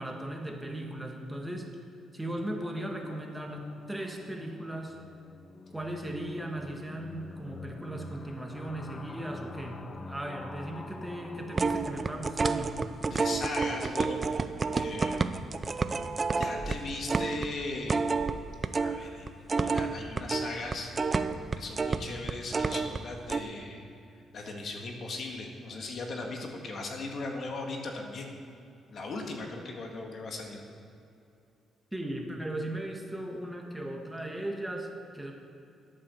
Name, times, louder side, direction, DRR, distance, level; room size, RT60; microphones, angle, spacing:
voice 1, 0.0-1.7 2.1-5.0 5.7-12.8 31.9-35.3, right 1 dB, 10° right, 2 dB, 1.6 m, -37 dB
sound 1, 2.3-13.1, left 3 dB, 35° left, 0.8 m, -46 dB
sound 2, 11.5-19.0 19.3-23.0 23.3-23.4, right 4 dB, 30° right, 0.6 m, -29 dB
voice 2, 13.1-14.2 14.7-15.2 16.4-18.0 18.8-20.9 21.6-23.9 24.3-28.3 28.9-30.6, left 3 dB, 55° left, 2 dB, 1.9 m, -38 dB
12.0 x 8.6 x 7.1 m, 2.6 s
cardioid pair, 90°, 0 cm